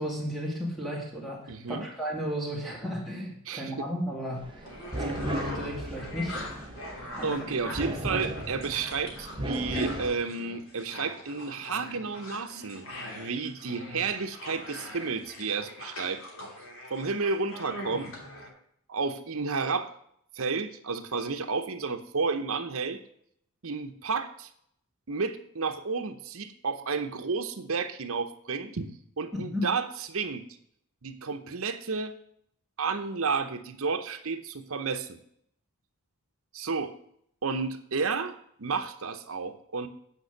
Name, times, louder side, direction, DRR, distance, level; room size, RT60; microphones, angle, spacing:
voice 1, 0.0-4.7 5.0-6.7 7.1-7.7 29.3-29.7, equal, ahead, -3 dB, 2.2 m, -34 dB
voice 2, 1.5-1.9 3.5-3.9 7.2-12.9 13.2-16.2 16.9-18.1 18.9-19.9 20.4-23.0 23.6-24.5 25.1-30.4 31.0-32.1 32.8-35.2 36.5-36.9 37.4-39.9, right 4 dB, 65° right, 8 dB, 0.8 m, -31 dB
sound 1, 4.4-10.1, right 1 dB, 20° right, 0.7 m, -36 dB
sound 2, 4.6-18.5, left 1 dB, 65° left, 2.8 m, -42 dB
9.2 x 5.3 x 6.6 m, 0.69 s
head